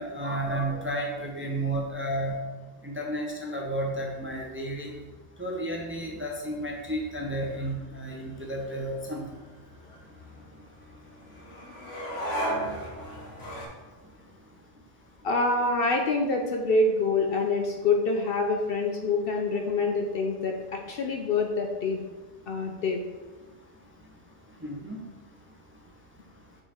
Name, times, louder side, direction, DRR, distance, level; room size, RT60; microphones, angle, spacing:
voice 1, 0.0-2.4 2.8-4.9 5.4-9.3 24.6-25.0, right 1 dB, 15° right, 0 dB, 0.6 m, -32 dB
sound 1, 4.2-13.7, right 1 dB, 80° left, 1.6 m, -39 dB
voice 2, 15.2-22.0 22.5-23.1, left 3 dB, 60° left, 3 dB, 0.7 m, -26 dB
6.9 x 3.8 x 4.3 m, 1.3 s
omnidirectional pair, 1.2 m